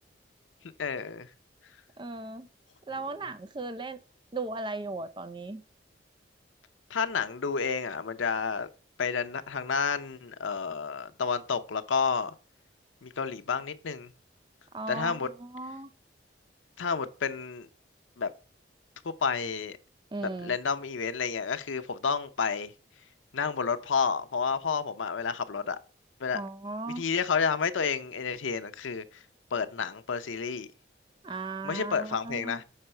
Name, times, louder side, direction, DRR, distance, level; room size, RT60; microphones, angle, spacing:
voice 1, 0.8-1.3 6.9-8.7 9.0-12.3 13.0-14.1 14.9-15.3 16.8-17.7 18.2-18.3 19.0-19.8 20.4-22.7 23.3-25.8 26.2-26.4 27.0-29.0 29.5-30.7 31.6-32.6, left 5 dB, 90° left, 0.6 m, -30 dB
voice 2, 2.0-2.5 2.9-4.0 4.3-5.6 14.7-15.9 20.1-20.6 26.3-27.0 31.2-32.6, right 3 dB, 25° right, 0.5 m, -37 dB
6.6 x 4.7 x 4.3 m
head